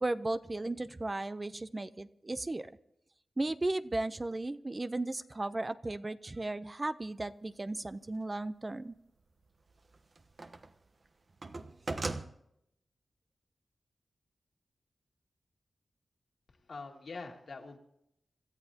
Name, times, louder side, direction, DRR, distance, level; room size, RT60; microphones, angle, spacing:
voice 1, 0.0-2.7 3.4-8.9, right 2 dB, 25° right, 12 dB, 0.6 m, -35 dB
sound 1, 7.7-7.8 9.5-10.8 11.1-12.3, right 3 dB, 45° right, 1.0 m, -39 dB
voice 2, 16.5-17.8, left 4 dB, 65° left, 1 dB, 2.3 m, -45 dB
27.0 x 13.5 x 2.8 m, 0.78 s
wide cardioid pair, 100°, 0 cm